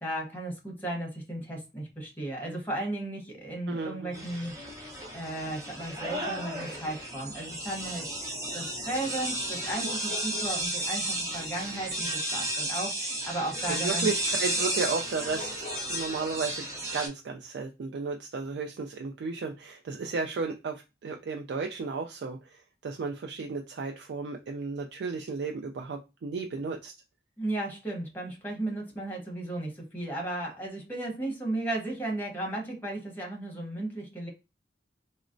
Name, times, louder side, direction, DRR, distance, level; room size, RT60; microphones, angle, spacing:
voice 1, 0.0-4.5 5.1-8.1 8.5-14.1 27.4-34.3, right 1 dB, 10° left, 1.0 m, -35 dB
voice 2, 3.7-4.2 13.7-16.7 16.9-26.9, right 4 dB, 70° right, 0.4 m, -34 dB
sound 1, 4.1-17.1, right 1 dB, 20° right, 0.7 m, -33 dB
sound 2, 9.4-10.7 11.0-13.4 15.0-15.1 15.3-15.8, left 3 dB, 45° left, 0.4 m, -44 dB
3.9 x 2.1 x 2.5 m
head